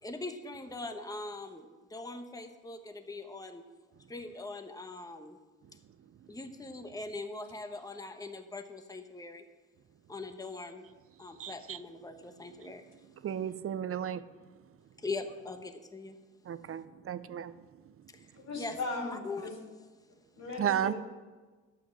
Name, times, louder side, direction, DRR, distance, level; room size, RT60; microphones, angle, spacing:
voice 1, 0.0-3.6 4.1-5.4 6.3-9.4 10.1-10.8 11.2-12.8 15.0-16.2 18.1-18.3 18.5-19.5, left 3 dB, 10° left, 7 dB, 1.0 m, -41 dB
voice 2, 11.4-11.8 12.6-12.7 13.2-14.2 16.4-17.5 20.6-20.9, right 9 dB, 50° right, 14 dB, 0.6 m, -33 dB
voice 3, 18.3-19.5 20.4-21.0, left 3 dB, 65° left, 0 dB, 3.2 m, -38 dB
11.5 x 8.7 x 5.8 m, 1.3 s
cardioid pair, 90°, 30 cm